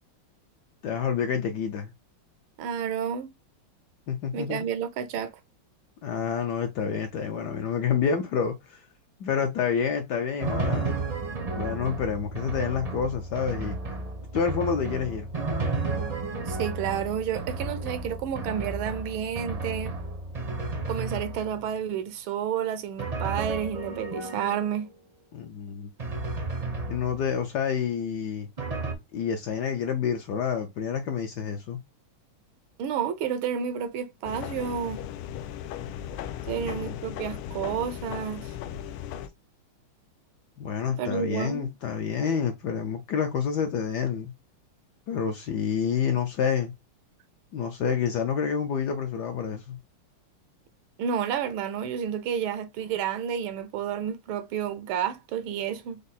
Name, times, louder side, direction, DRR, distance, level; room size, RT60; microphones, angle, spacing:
voice 1, 0.8-1.9 4.1-4.6 6.0-8.8 9.2-10.9 11.5-13.8 14.3-15.3 25.3-25.9 26.9-28.5 29.1-31.8 36.5-37.0 40.6-44.3 45.1-46.7 47.5-49.8, left 7 dB, 70° left, 1.0 m, -28 dB
voice 2, 2.6-3.3 4.3-5.3 16.4-19.9 20.9-24.9 32.8-35.0 36.5-38.5 40.8-41.7 42.2-42.5 51.0-56.0, right 8 dB, 80° right, 1.5 m, -30 dB
Drum, 10.4-21.8 23.0-24.9 26.0-27.5 28.6-28.9, right 3 dB, 45° right, 0.5 m, -33 dB
sound 1, 34.2-39.3, left 10 dB, 85° left, 1.4 m, -37 dB
5.1 x 2.0 x 4.1 m
omnidirectional pair, 2.3 m